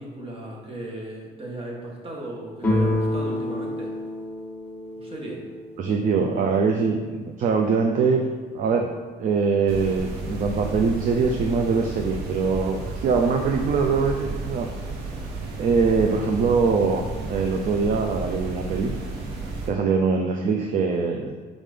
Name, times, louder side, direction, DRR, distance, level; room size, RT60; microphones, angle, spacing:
voice 1, 0.0-3.9 5.0-5.4, right 1 dB, 35° right, -2 dB, 1.6 m, -36 dB
sound 1, 2.6-6.2, left 1 dB, 10° left, 1.3 m, -28 dB
voice 2, 5.8-8.2 8.5-8.9 9.2-14.7 15.6-18.9 19.7-21.4, right 5 dB, 50° right, 3 dB, 0.6 m, -23 dB
sound 2, 9.7-19.7, right 3 dB, 75° right, 1.1 m, -33 dB
5.0 x 3.8 x 5.0 m, 1.5 s
cardioid pair, 110°, 17 cm